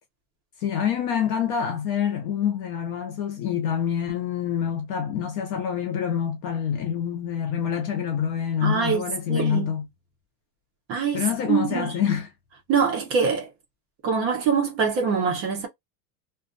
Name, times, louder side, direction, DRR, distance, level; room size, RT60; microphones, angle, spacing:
voice 1, 0.6-9.9 11.1-12.3, left 8 dB, 35° left, 0.4 m, -26 dB
voice 2, 8.6-9.0 9.3-9.7 10.9-12.1 12.7-13.5 14.0-15.7, right 6 dB, 30° right, 0.7 m, -24 dB
2.5 x 2.2 x 2.4 m
supercardioid pair, 165°, 44 cm